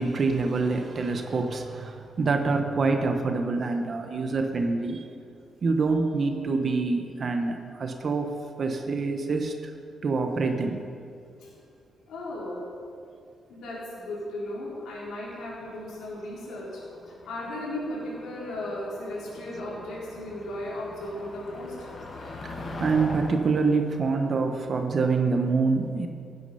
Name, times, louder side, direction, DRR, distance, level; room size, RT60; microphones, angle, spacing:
voice 1, 0.0-5.0 5.6-8.3 8.6-9.7 10.0-10.8 22.4-26.1, right 4 dB, 40° right, 4 dB, 1.1 m, -26 dB
voice 2, 12.1-12.7 13.5-21.9, left 1 dB, 85° left, -6 dB, 4.0 m, -36 dB
Motor vehicle (road), 15.0-25.3, left 1 dB, 35° left, 1.7 m, -43 dB
16.5 x 9.6 x 5.6 m, 2.5 s
cardioid pair, 145°, 0 cm